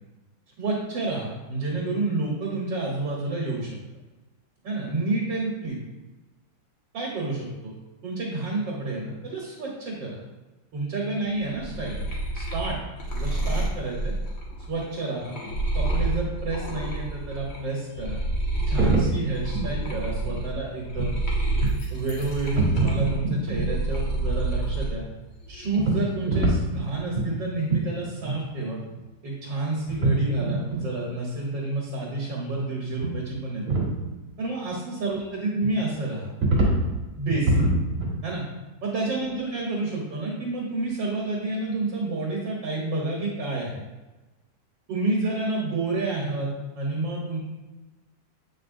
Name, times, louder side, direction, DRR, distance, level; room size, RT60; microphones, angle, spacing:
voice 1, 0.6-3.8 4.6-5.8 6.9-7.7 8.0-10.2 10.7-12.0 12.3-12.8 13.1-14.1 14.7-15.4 15.8-18.2 18.7-21.2 21.9-25.1 25.5-28.8 29.2-33.6 34.4-36.3 37.2-37.6 38.2-38.4 38.8-43.7 44.9-47.4, right 2 dB, 70° right, -4 dB, 1.7 m, -29 dB
sound 1, 11.4-17.6 17.9-24.9 25.3-26.0, right 2 dB, 50° left, 1.4 m, -29 dB
sound 2, 18.8-19.2 19.5-19.7 20.2-20.4 20.9-21.1 21.6-21.8 22.1-22.3 22.5-23.7 25.8-26.9 27.1-27.4 27.7-27.9 28.2-28.4 28.6-28.7 28.9-29.0 29.8-30.2 30.4-30.8 33.0-33.2 33.4-33.9 35.6-35.7 36.4-36.8 37.3-38.1, right 2 dB, 40° right, 1.8 m, -24 dB
8.2 x 5.3 x 2.5 m, 1.1 s
omnidirectional pair, 2.1 m